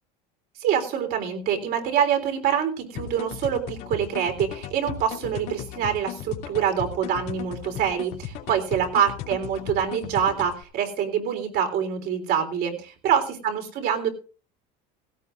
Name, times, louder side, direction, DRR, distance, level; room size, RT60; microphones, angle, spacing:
voice 1, 0.6-14.1, right 8 dB, 55° right, 5 dB, 3.7 m, -25 dB
sound 1, 2.9-10.6, left 9 dB, 80° left, 2.8 m, -36 dB
17.0 x 17.0 x 2.5 m, 0.36 s
cardioid pair, 135°, 20 cm